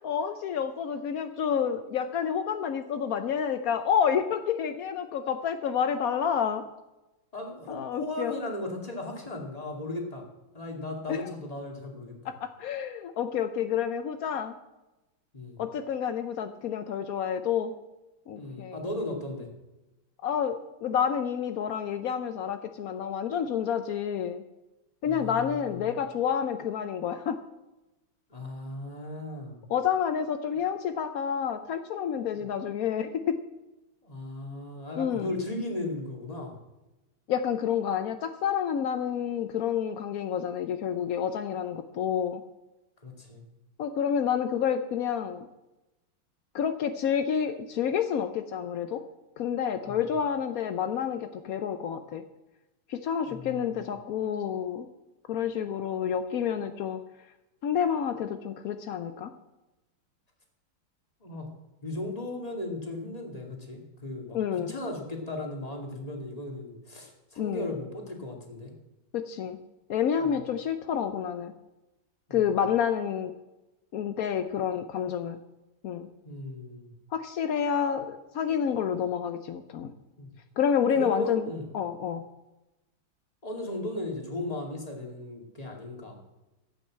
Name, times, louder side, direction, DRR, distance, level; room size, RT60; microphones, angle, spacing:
voice 1, 0.0-6.6 7.7-8.4 11.1-11.3 12.2-14.5 15.6-17.7 18.3-18.8 20.2-24.4 25.0-27.4 29.7-33.4 35.0-35.3 37.3-42.4 43.8-45.5 46.5-49.0 49.4-52.2 52.9-54.9 55.3-57.0 57.6-59.3 64.3-64.7 67.4-67.7 69.1-69.6 69.9-71.5 72.3-73.3 73.9-75.4 75.8-76.1 77.1-79.9 80.6-82.3, left 8 dB, 75° left, 9 dB, 0.8 m, -29 dB
voice 2, 7.3-10.2 10.5-12.1 15.3-15.6 18.4-19.5 25.0-25.9 28.3-29.6 34.0-36.5 43.0-43.4 49.9-50.1 53.2-53.9 61.2-61.5 61.8-64.4 64.7-68.7 70.2-70.4 72.3-72.5 76.2-76.9 80.2-80.3 80.9-81.6 83.4-86.2, left 2 dB, 15° left, 1 dB, 2.3 m, -36 dB
14.0 x 8.6 x 7.4 m, 1.0 s
omnidirectional pair, 2.3 m